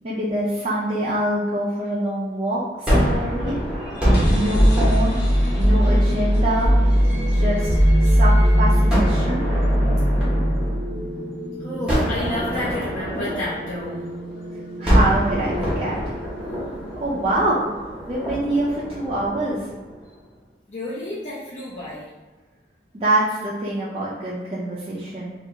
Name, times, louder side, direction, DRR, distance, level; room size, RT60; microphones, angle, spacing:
voice 1, 0.0-3.6 4.3-5.2 5.6-6.7 7.3-7.7 8.0-9.4 14.8-16.0 17.0-17.7 18.1-19.7 22.9-25.3, right 1 dB, 35° right, -8 dB, 0.4 m, -25 dB
Gunshot gunfire, 2.9-8.0 8.9-11.3 11.9-14.4 14.9-20.1, equal, 5° right, 0.7 m, -26 dB
sound 1, 3.9-17.7, equal, 85° left, 0.9 m, -21 dB
voice 2, 11.6-14.1 20.7-22.1, left 1 dB, 45° left, -9 dB, 0.5 m, -30 dB
2.4 x 2.2 x 2.9 m, 1.3 s
head